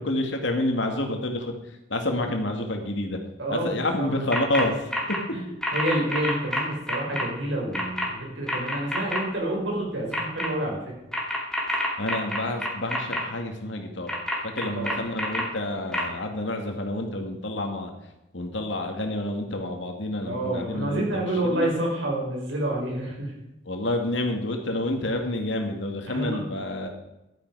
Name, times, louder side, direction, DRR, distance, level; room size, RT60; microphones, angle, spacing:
voice 1, 0.0-3.2 3.5-4.9 12.0-14.1 14.4-17.9 18.3-21.7 23.7-26.9, left 1 dB, 80° left, 4 dB, 2.2 m, -29 dB
voice 2, 3.4-4.1 5.3-5.4 5.7-11.0 14.8-14.9 20.2-23.3 26.1-26.4, right 1 dB, 90° right, -2 dB, 5.1 m, -28 dB
sound 1, 4.3-4.6 4.9-5.2 5.6-7.2 7.7-8.1 8.5-9.2 10.1-10.5 11.1-13.2 14.1-15.4 15.9-16.0, left 1 dB, 5° left, 2.6 m, -27 dB
12.5 x 9.8 x 4.8 m, 0.93 s
head